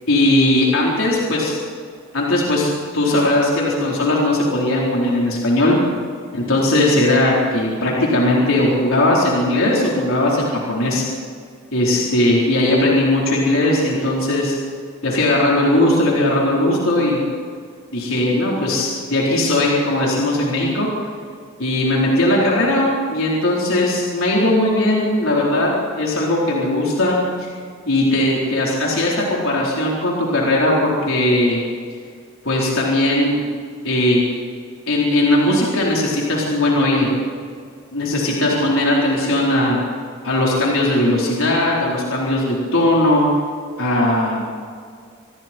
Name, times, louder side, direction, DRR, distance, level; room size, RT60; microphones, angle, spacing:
voice 1, 0.1-1.5 2.1-2.7 2.9-5.7 6.3-11.0 11.7-14.6 15.0-17.2 17.9-20.9 21.6-25.7 26.0-27.5 27.9-31.6 32.4-33.4 33.8-34.2 34.9-37.1 37.9-39.8 40.2-43.3 43.8-44.5, left 1 dB, 70° left, -4 dB, 4.3 m, -18 dB
27.0 x 21.5 x 4.6 m, 2.2 s
head